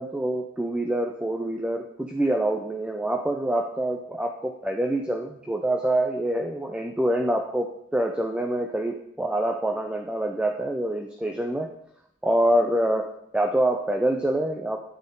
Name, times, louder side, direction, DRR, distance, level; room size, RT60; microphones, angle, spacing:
voice 1, 0.0-11.7 12.2-13.1 13.3-14.8, right 1 dB, 5° right, 3 dB, 0.4 m, -26 dB
11.0 x 3.7 x 3.8 m, 0.75 s
head